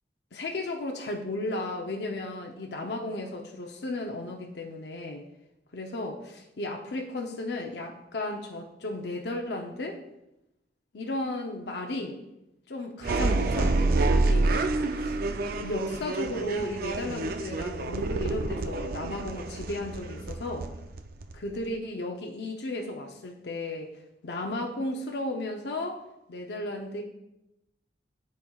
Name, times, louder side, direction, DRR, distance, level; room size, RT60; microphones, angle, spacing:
voice 1, 0.3-5.2 5.7-10.0 10.9-12.2 12.7-14.5 14.9-15.2 15.6-20.7 21.3-23.9 24.2-26.0 26.3-27.0, left 2 dB, 70° left, 1 dB, 0.6 m, -34 dB
sound 1, 13.0-21.7, right 2 dB, 55° right, 0.4 m, -28 dB
12.0 x 4.3 x 2.3 m, 0.91 s
head